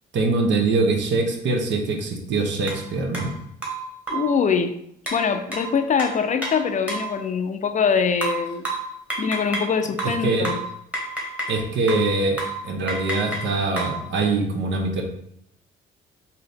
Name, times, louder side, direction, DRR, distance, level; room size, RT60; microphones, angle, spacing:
voice 1, 0.1-3.3 10.0-10.6 11.5-12.4 12.6-15.0, right 3 dB, 65° right, 3 dB, 0.8 m, -23 dB
sound 1, 2.7-2.8 3.1-3.3 3.6-4.4 5.1-7.2 8.2-9.7 10.0-11.6 11.9-12.1 12.4-12.6 12.9-14.0, right 2 dB, 5° right, 1.2 m, -30 dB
voice 2, 4.1-4.8 5.1-8.6 9.2-10.6, left 6 dB, 40° left, 8 dB, 0.4 m, -23 dB
3.8 x 2.8 x 3.4 m, 0.72 s
cardioid pair, 90°, 20 cm